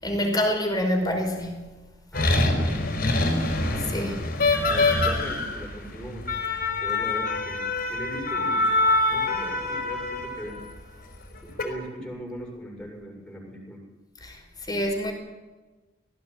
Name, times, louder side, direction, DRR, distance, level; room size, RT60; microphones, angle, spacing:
voice 1, 0.0-1.8 3.9-4.1 14.2-14.4 14.7-15.1, equal, 20° left, 5.4 m, -26 dB
sound 1, 2.1-10.6 11.3-11.6, left 2 dB, 55° left, 4.9 m, -25 dB
voice 2, 2.1-2.7 3.7-4.2 4.7-6.3 6.8-8.7 9.0-10.6 11.4-13.8, equal, 5° left, 7.2 m, -39 dB
19.5 x 17.0 x 9.4 m
head